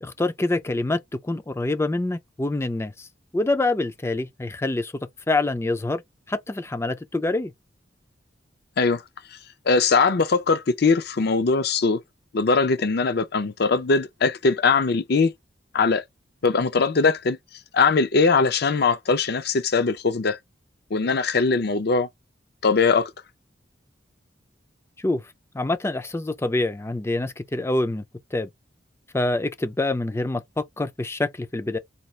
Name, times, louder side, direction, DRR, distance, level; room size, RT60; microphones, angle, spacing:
voice 1, 0.0-3.1 3.3-4.9 5.3-6.0 6.3-7.5 25.0-25.2 25.5-28.0 28.3-28.5 29.1-31.8, left 2 dB, 15° left, 0.4 m, -26 dB
voice 2, 9.7-12.0 12.3-15.3 15.7-16.0 16.4-17.4 17.7-20.4 20.9-22.1 22.6-23.1, left 4 dB, 60° left, 0.6 m, -21 dB
4.2 x 2.4 x 3.1 m
head